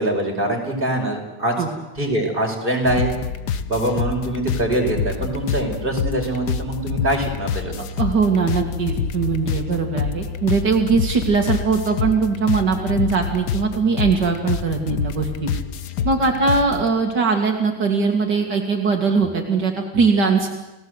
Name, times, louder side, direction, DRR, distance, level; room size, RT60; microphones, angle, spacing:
voice 1, 0.0-1.5 2.0-3.1 3.7-7.7, right 1 dB, 30° right, 0 dB, 5.2 m, -23 dB
sound 1, 2.9-16.9, left 7 dB, 70° left, 1.6 m, -27 dB
voice 2, 7.8-15.5 16.0-20.5, right 4 dB, 75° right, 2 dB, 2.8 m, -20 dB
30.0 x 18.5 x 8.0 m, 1.0 s
omnidirectional pair, 1.9 m